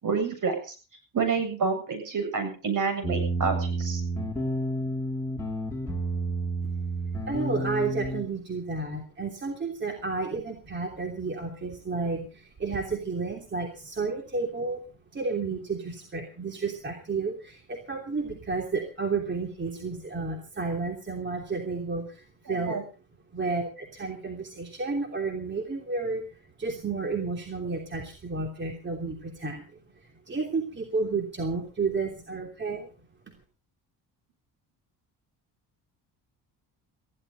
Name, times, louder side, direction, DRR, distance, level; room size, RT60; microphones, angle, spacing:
voice 1, 0.0-0.7 1.1-4.0 22.5-22.8, right 5 dB, 50° right, 8 dB, 7.6 m, -28 dB
sound 1, 3.0-8.2, right 2 dB, 5° left, 5.3 m, -30 dB
voice 2, 7.3-14.8 15.1-22.8 23.3-32.9, right 4 dB, 25° right, 2 dB, 3.1 m, -31 dB
19.5 x 15.0 x 4.0 m, 0.36 s
cardioid pair, 110°, 41 cm